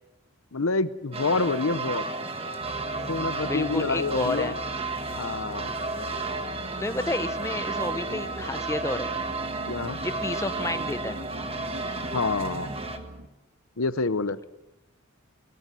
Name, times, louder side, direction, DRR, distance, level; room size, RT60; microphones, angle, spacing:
voice 1, 0.5-2.1 3.1-4.5 5.1-5.7 9.7-10.0 12.0-12.7 13.8-14.4, left 3 dB, 75° left, 15 dB, 0.9 m, -27 dB
sound 1, 1.1-13.0, right 3 dB, 25° right, 1.6 m, -32 dB
sound 2, 2.6-13.3, right 1 dB, 75° right, 2.0 m, -42 dB
voice 2, 3.5-4.5 6.8-9.1 10.0-11.2, left 2 dB, 15° left, 11 dB, 0.8 m, -30 dB
22.0 x 18.5 x 7.7 m, 1.0 s
head